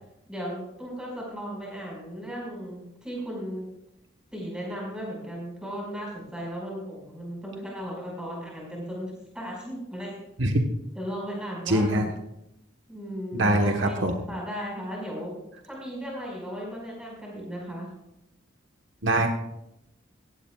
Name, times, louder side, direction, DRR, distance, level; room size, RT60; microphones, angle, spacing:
voice 1, 0.3-3.7 4.3-10.2 10.9-12.1 12.9-13.9 14.3-15.3 15.7-17.9, equal, 5° right, -3 dB, 5.3 m, -36 dB
voice 2, 11.7-12.1 13.3-14.2 19.0-19.3, right 1 dB, 70° right, 3 dB, 1.3 m, -23 dB
16.5 x 16.0 x 2.4 m, 0.84 s
head